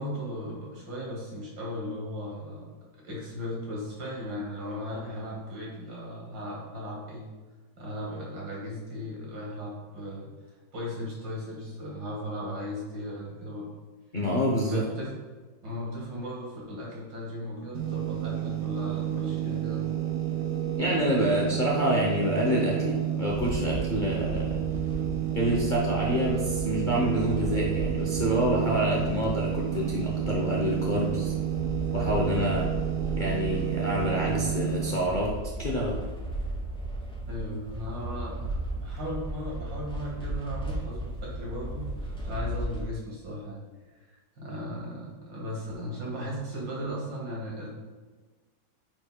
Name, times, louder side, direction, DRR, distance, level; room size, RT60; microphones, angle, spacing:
voice 1, 0.0-7.3 7.8-10.3 10.7-13.7 14.7-15.1 15.6-19.8 37.3-43.6 44.4-47.7, equal, 80° right, -4 dB, 2.5 m, -37 dB
voice 2, 14.1-14.8 20.8-24.6 25.3-31.3 31.9-32.6 33.2-35.3 35.6-35.9, equal, 45° left, -4 dB, 0.6 m, -27 dB
sound 1, 17.7-35.0, right 11 dB, 60° right, 1.0 m, -30 dB
sound 2, 23.3-42.9, right 1 dB, 5° left, 0.4 m, -36 dB
8.7 x 5.1 x 2.2 m, 1.4 s
omnidirectional pair, 2.0 m